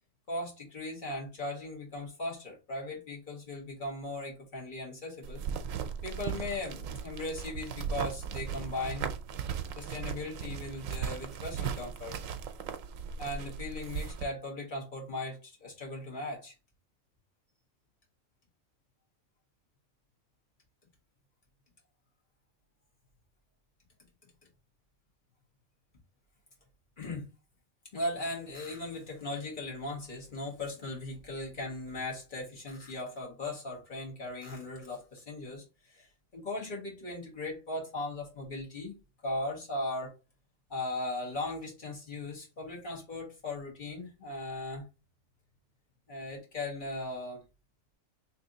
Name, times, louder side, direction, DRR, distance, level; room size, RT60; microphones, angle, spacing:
voice 1, 0.3-5.4 6.0-9.1 9.7-12.2 13.2-16.5 27.0-27.3 27.9-36.1 36.3-38.9 39.2-40.1 40.7-44.8 46.1-47.4, left 2 dB, 40° left, -2 dB, 1.6 m, -38 dB
sound 1, 5.2-14.2, right 7 dB, 85° right, 1.0 m, -37 dB
3.2 x 2.8 x 3.8 m, 0.29 s
omnidirectional pair, 1.3 m